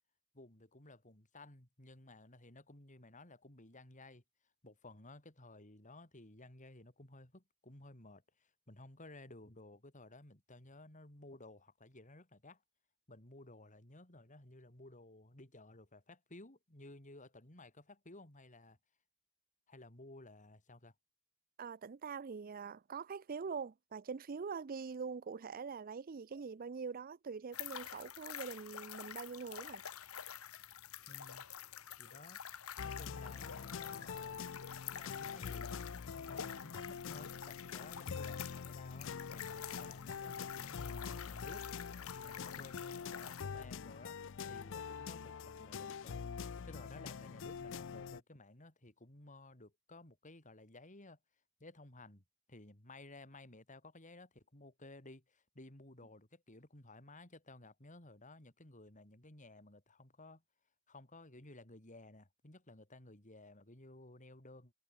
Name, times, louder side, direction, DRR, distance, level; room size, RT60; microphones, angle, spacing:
voice 1, 0.3-4.2 4.6-12.6 13.1-18.8 19.7-20.9 31.1-31.5 32.0-32.4 32.8-34.4 35.0-35.8 36.2-41.7 42.2-44.2 44.4-46.2 46.6-51.2 51.6-60.4 60.9-64.7, left 2 dB, 35° left, 3.7 m, -56 dB
voice 2, 21.6-29.8, right 5 dB, 40° right, 0.5 m, -44 dB
sound 1, 27.5-43.4, left 9 dB, 75° left, 1.2 m, -48 dB
sound 2, 32.8-48.2, left 6 dB, 60° left, 0.5 m, -45 dB
head